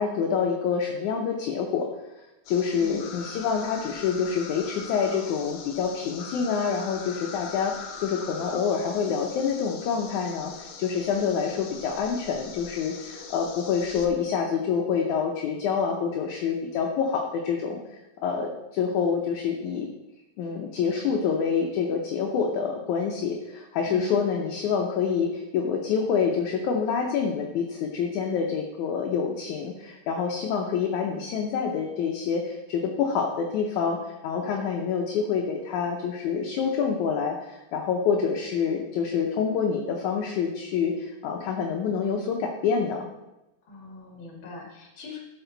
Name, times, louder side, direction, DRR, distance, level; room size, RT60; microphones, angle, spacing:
voice 1, 0.0-1.9 2.5-17.8 18.2-19.9 20.4-43.1, left 6 dB, 70° left, 1 dB, 2.0 m, -27 dB
sound 1, 2.4-14.1, left 5 dB, 90° left, 1.4 m, -42 dB
voice 2, 2.8-3.3 23.8-24.4 43.7-45.2, left 3 dB, 40° left, 0 dB, 2.4 m, -42 dB
12.5 x 7.2 x 4.0 m, 0.96 s
omnidirectional pair, 4.3 m